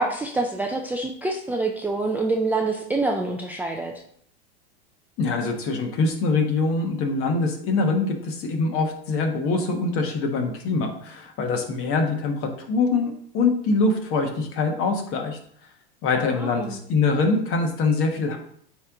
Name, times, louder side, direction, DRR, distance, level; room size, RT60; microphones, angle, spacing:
voice 1, 0.0-3.9 16.3-16.8, right 2 dB, 5° right, 1 dB, 0.4 m, -26 dB
voice 2, 5.2-15.4 16.0-18.4, left 3 dB, 45° left, 3 dB, 1.4 m, -24 dB
9.3 x 3.2 x 3.7 m, 0.64 s
hypercardioid pair, 115°, 32 cm